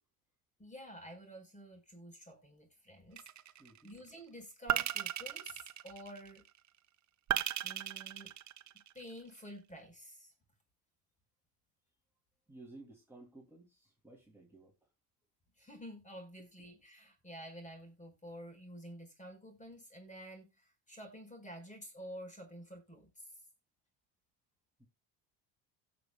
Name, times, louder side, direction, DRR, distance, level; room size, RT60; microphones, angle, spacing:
voice 1, 0.6-3.5 3.8-6.4 7.6-8.3 8.9-10.3 15.6-23.3, equal, 15° left, 5.1 m, -50 dB
sound 1, 3.2-3.8 4.7-6.4 7.3-9.1, right 11 dB, 40° right, 0.9 m, -36 dB
voice 2, 3.6-4.0 12.5-14.9 16.4-16.5 24.8-24.9, right 2 dB, 5° right, 2.8 m, -56 dB
17.5 x 6.2 x 2.3 m
supercardioid pair, 100°, 44 cm